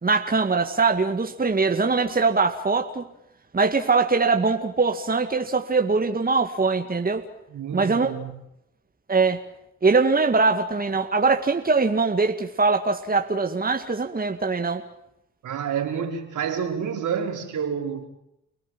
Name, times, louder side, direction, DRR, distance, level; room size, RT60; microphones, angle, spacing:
voice 1, 0.0-3.0 3.5-7.2 7.7-8.1 9.1-9.4 9.8-14.8, right 4 dB, 25° right, 2.1 m, -22 dB
voice 2, 7.5-8.3 15.4-18.0, right 7 dB, 65° right, 4.9 m, -29 dB
30.0 x 19.0 x 7.6 m
supercardioid pair, 55°, 32 cm